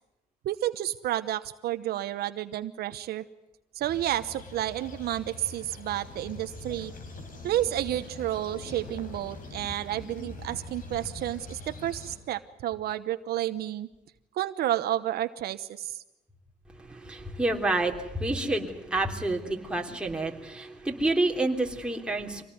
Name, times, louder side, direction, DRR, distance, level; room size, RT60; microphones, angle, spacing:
voice 1, 0.4-3.2 3.7-6.9 7.4-13.9 14.3-16.0, right 13 dB, 65° right, 11 dB, 1.0 m, -31 dB
sound 1, 3.8-12.2, left 3 dB, 55° left, 5.3 m, -43 dB
voice 2, 16.8-22.4, right 2 dB, 5° right, 1 dB, 3.3 m, -29 dB
25.5 x 18.5 x 9.5 m, 0.96 s
cardioid pair, 110°, 17 cm